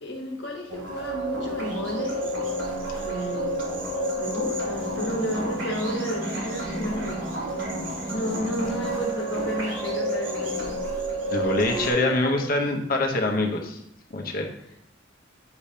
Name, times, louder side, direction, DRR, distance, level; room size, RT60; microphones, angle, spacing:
voice 1, 0.0-2.3 2.9-3.6 4.2-7.8 8.1-10.7 12.0-12.5, equal, 65° left, 1 dB, 1.2 m, -32 dB
sound 1, 0.7-11.9, right 1 dB, 90° right, 2.2 m, -30 dB
voice 2, 11.3-13.8 14.1-14.5, left 2 dB, 50° left, 2 dB, 0.9 m, -24 dB
8.6 x 5.1 x 2.8 m, 0.74 s
head